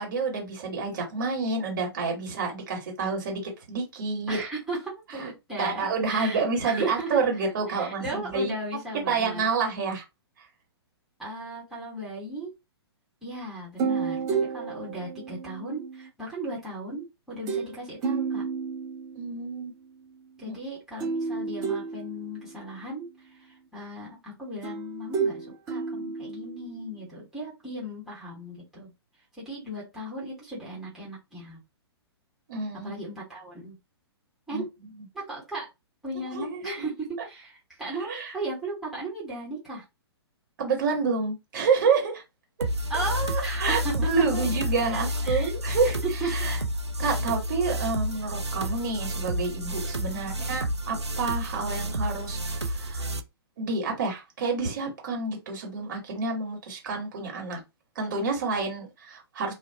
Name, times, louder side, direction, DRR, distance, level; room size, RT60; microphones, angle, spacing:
voice 1, 0.0-3.4 3.7-4.4 5.2-5.3 5.6-8.5 9.1-10.0 19.1-19.7 20.5-20.6 32.5-32.9 34.5-34.6 36.3-36.9 37.8-38.3 40.6-42.2 42.9-43.0 43.5-46.6 47.0-53.0 53.6-57.6 57.9-59.5, right 4 dB, 50° right, 1.5 m, -28 dB
voice 2, 4.3-7.2 7.7-9.4 11.2-12.5 13.2-18.5 20.4-28.9 29.4-31.6 32.8-33.7 34.5-34.7 35.1-35.7 36.0-39.8 42.9-45.5 46.0-46.3 50.1-50.4, right 2 dB, ahead, 1.3 m, -36 dB
sound 1, 13.8-16.1 17.5-17.7 18.0-19.3 21.0-22.7 24.6-26.9, right 5 dB, 25° right, 0.9 m, -31 dB
sound 2, 42.6-53.2, equal, 85° right, 0.5 m, -30 dB
2.5 x 2.1 x 2.8 m
figure-of-eight pair, 115°, 14 cm